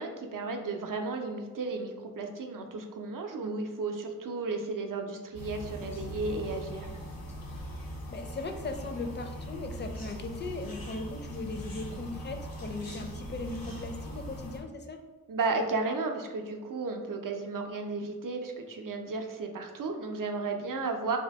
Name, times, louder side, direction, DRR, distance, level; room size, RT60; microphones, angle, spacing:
voice 1, 0.0-6.9 15.3-21.2, right 3 dB, 65° right, 4 dB, 0.5 m, -34 dB
sound 1, 5.3-14.6, equal, 85° left, 0.8 m, -41 dB
voice 2, 8.1-15.0, left 3 dB, 30° left, 5 dB, 0.4 m, -38 dB
2.8 x 2.6 x 3.4 m, 1.3 s
wide cardioid pair, 45°, 34 cm